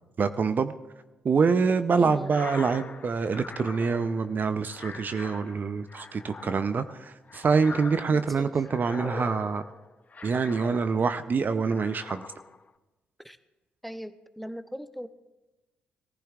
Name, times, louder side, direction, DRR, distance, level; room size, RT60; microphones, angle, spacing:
voice 1, 0.2-0.7 1.2-9.6 10.2-12.3, right 5 dB, 45° right, 11 dB, 0.6 m, -26 dB
voice 2, 2.0-2.4 8.1-8.5 13.2-13.4 13.8-15.1, equal, ahead, 11 dB, 0.8 m, -39 dB
sound 1, 2.2-11.3 11.7-12.7, left 4 dB, 35° left, 0.7 m, -42 dB
20.5 x 15.0 x 2.4 m, 1.1 s
hypercardioid pair, 45°, 4 cm